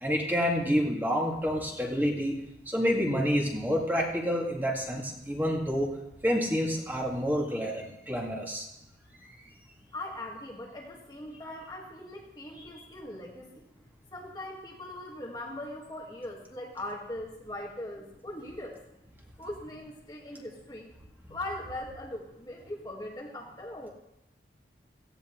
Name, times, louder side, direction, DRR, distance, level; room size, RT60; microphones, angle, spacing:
voice 1, 0.0-2.4 2.7-5.9 6.2-8.7, equal, 10° right, -2 dB, 2.1 m, -28 dB
voice 2, 9.9-13.6 14.1-18.8 19.4-20.9 21.3-23.9, left 1 dB, 20° left, -2 dB, 1.8 m, -40 dB
17.0 x 15.5 x 3.2 m, 0.85 s
head